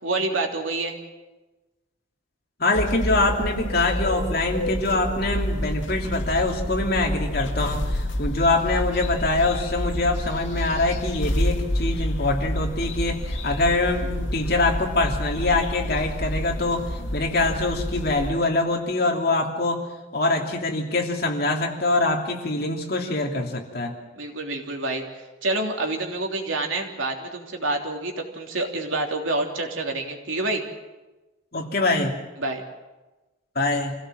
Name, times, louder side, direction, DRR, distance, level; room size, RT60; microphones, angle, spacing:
voice 1, 0.0-0.9 24.1-25.0 25.4-30.6 32.4-32.6, right 2 dB, 90° right, 2 dB, 3.2 m, -27 dB
voice 2, 2.6-16.9 17.1-19.8 20.1-23.9 31.5-32.2 33.5-33.9, left 2 dB, 50° left, 1 dB, 2.9 m, -24 dB
sound 1, 2.7-18.3, left 1 dB, 75° left, 2.3 m, -28 dB
26.0 x 16.5 x 7.7 m, 1.1 s
head